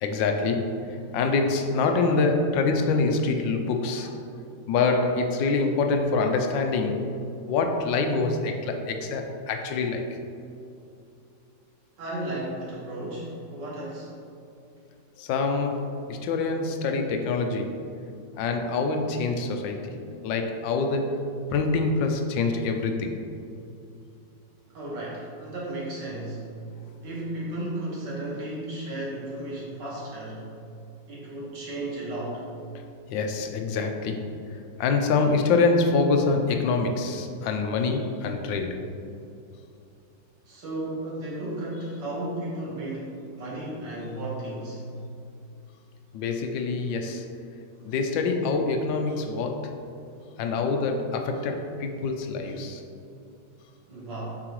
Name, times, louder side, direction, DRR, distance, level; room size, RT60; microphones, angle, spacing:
voice 1, 0.0-4.3 4.7-7.1 7.5-10.2 15.2-17.8 18.4-20.0 20.2-23.2 33.1-34.3 34.8-38.8 46.1-47.3 47.8-49.8 50.4-52.8, left 4 dB, 85° left, 4 dB, 1.3 m, -25 dB
voice 2, 12.0-14.2 24.7-26.5 27.0-30.5 31.1-32.4 40.5-44.8 53.9-54.4, right 1 dB, 70° right, -6 dB, 2.1 m, -34 dB
7.5 x 4.8 x 3.1 m, 2.6 s
omnidirectional pair, 2.0 m